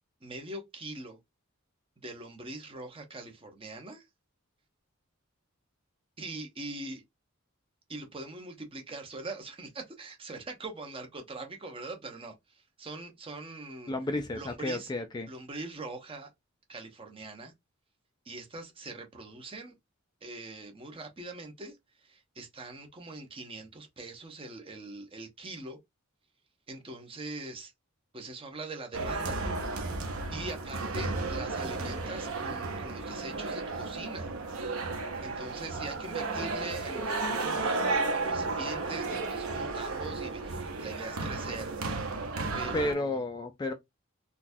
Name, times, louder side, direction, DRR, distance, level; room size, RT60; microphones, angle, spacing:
voice 1, 0.2-1.2 2.0-4.0 6.2-7.0 7.9-13.9 14.3-14.9 15.3-16.3 16.7-17.5 18.2-19.7 20.2-25.8 26.7-27.7 28.1-29.4 30.3-34.3 35.2-41.8 42.5-43.2, right 2 dB, 25° right, 0.8 m, -42 dB
voice 2, 13.9-15.3 42.7-43.7, left 2 dB, 20° left, 0.3 m, -32 dB
sound 1, 28.9-42.9, right 3 dB, 90° right, 0.7 m, -33 dB
3.9 x 2.2 x 2.6 m
head